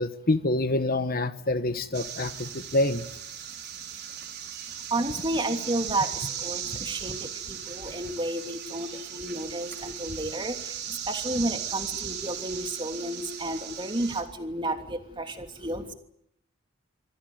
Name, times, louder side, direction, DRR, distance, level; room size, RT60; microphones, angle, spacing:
voice 1, 0.0-3.0, left 2 dB, 45° left, 11 dB, 1.2 m, -26 dB
sound 1, 1.9-14.2, right 9 dB, 55° right, 5.0 m, -37 dB
voice 2, 4.9-15.9, right 1 dB, 25° right, 4 dB, 3.1 m, -32 dB
26.0 x 17.0 x 9.5 m, 0.74 s
head